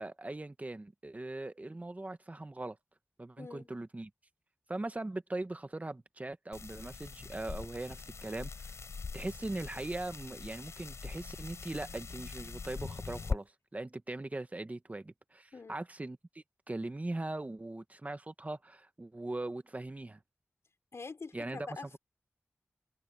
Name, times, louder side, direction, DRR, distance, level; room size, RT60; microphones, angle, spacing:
voice 1, 0.0-2.8 3.2-4.1 4.7-8.7 9.1-20.2 21.3-21.7, right 2 dB, 30° right, 1.3 m, -40 dB
voice 2, 3.4-3.7 15.5-15.8 20.9-22.0, left 4 dB, 70° left, 4.0 m, -45 dB
sound 1, 6.5-13.4, left 5 dB, 90° left, 5.9 m, -42 dB
wide cardioid pair, 60°, 5 cm